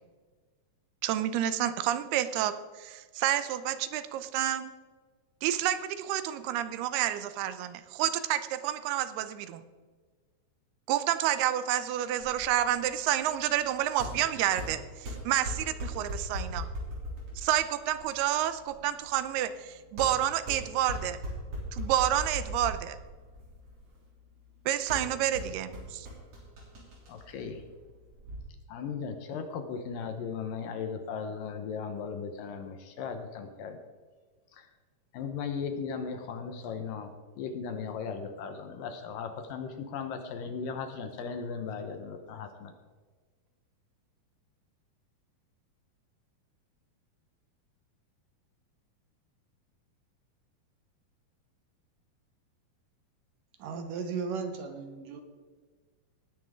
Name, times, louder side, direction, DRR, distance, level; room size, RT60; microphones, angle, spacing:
voice 1, 1.0-4.7 5.4-9.6 10.9-16.7 17.4-21.2 21.7-23.0 24.7-26.1, right 12 dB, 90° right, 12 dB, 2.8 m, -29 dB
sound 1, 12.2-28.4, equal, 45° right, 4.0 m, -40 dB
voice 2, 27.1-27.6 28.7-33.8 34.5-34.7 35.1-42.7, left 6 dB, 70° left, 6 dB, 2.5 m, -37 dB
voice 3, 53.6-55.2, right 5 dB, 70° right, 6 dB, 2.5 m, -35 dB
19.0 x 9.5 x 3.7 m, 1.5 s
omnidirectional pair, 4.4 m